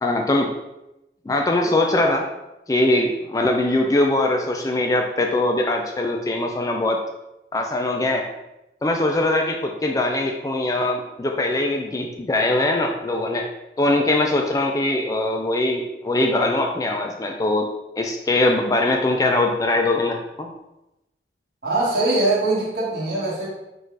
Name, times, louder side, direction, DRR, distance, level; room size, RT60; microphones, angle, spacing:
voice 1, 0.0-0.6 1.3-2.3 2.7-7.0 7.5-8.3 8.8-13.5 13.8-20.5, left 2 dB, 20° left, 2 dB, 0.3 m, -22 dB
voice 2, 21.6-23.5, right 2 dB, 60° right, -5 dB, 1.6 m, -22 dB
4.5 x 2.4 x 4.5 m, 0.92 s
head